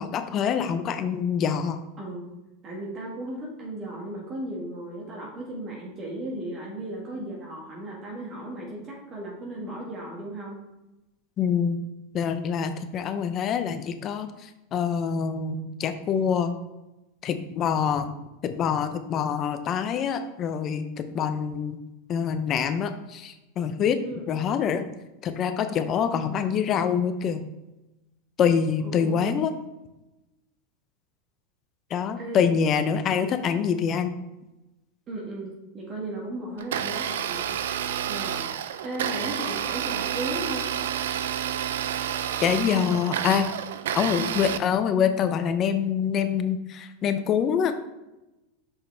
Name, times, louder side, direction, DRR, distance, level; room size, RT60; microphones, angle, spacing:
voice 1, 0.0-1.8 11.4-11.8 12.1-16.6 17.2-18.1 18.4-21.8 22.1-24.0 24.3-24.9 25.2-27.5 28.4-29.5 31.9-34.1 42.4-43.5 43.9-47.7, left 7 dB, 40° left, 9 dB, 0.6 m, -25 dB
voice 2, 2.0-2.3 2.6-10.6 24.0-24.3 28.8-29.3 32.2-32.4 35.1-37.5 38.1-38.5 38.8-40.7, right 1 dB, 35° right, -3 dB, 1.8 m, -36 dB
Domestic sounds home sounds, 36.6-44.6, right 9 dB, 85° right, 0.4 m, -29 dB
6.2 x 5.5 x 3.4 m, 0.99 s
supercardioid pair, 115°, 0 cm